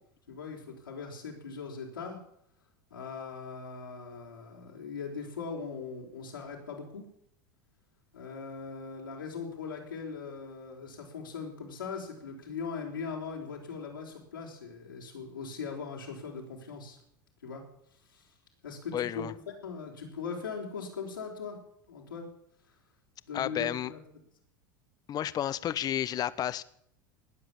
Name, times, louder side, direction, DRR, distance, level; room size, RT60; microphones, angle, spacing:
voice 1, 0.3-2.2 2.9-7.0 8.1-17.0 17.4-17.6 18.1-18.2 18.6-21.6 21.9-22.3 23.3-24.0, left 5 dB, 90° left, -2 dB, 4.5 m, -40 dB
voice 2, 18.9-19.3 23.3-23.9 25.1-26.6, left 11 dB, 35° left, 17 dB, 0.8 m, -31 dB
19.0 x 7.7 x 8.6 m, 0.69 s
hypercardioid pair, 85°, 11 cm